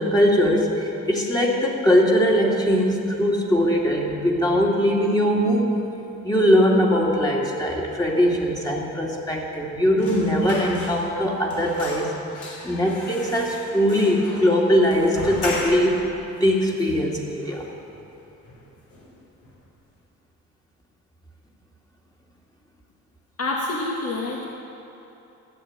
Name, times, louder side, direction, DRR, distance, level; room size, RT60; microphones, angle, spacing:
voice 1, 0.0-5.7 6.2-12.1 12.6-16.0 16.4-17.6, equal, 15° left, -2 dB, 2.0 m, -21 dB
sound 1, 10.0-11.2 11.5-16.0 16.4-16.5 16.8-17.6 17.9-18.1 18.4-19.1 19.4-19.6, left 2 dB, 70° left, 3.1 m, -36 dB
voice 2, 23.4-24.4, left 2 dB, 50° left, -2 dB, 1.5 m, -27 dB
13.0 x 6.5 x 8.6 m, 2.9 s
cardioid pair, 90°, 30 cm